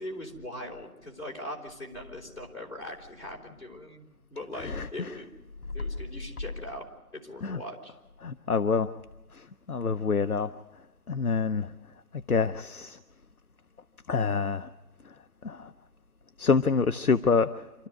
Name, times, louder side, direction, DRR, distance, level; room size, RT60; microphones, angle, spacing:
voice 1, 0.0-5.3 5.7-6.8 7.1-7.9, left 1 dB, 45° left, -2 dB, 4.5 m, -41 dB
voice 2, 4.5-5.1 7.4-7.6 8.2-8.9 9.3-10.5 11.1-11.7 12.1-13.0 14.1-14.7 15.0-15.1 15.4-15.7 16.4-17.7, left 5 dB, 70° left, 11 dB, 0.7 m, -27 dB
27.0 x 13.5 x 8.0 m, 1.1 s
figure-of-eight pair, 175°, 45 cm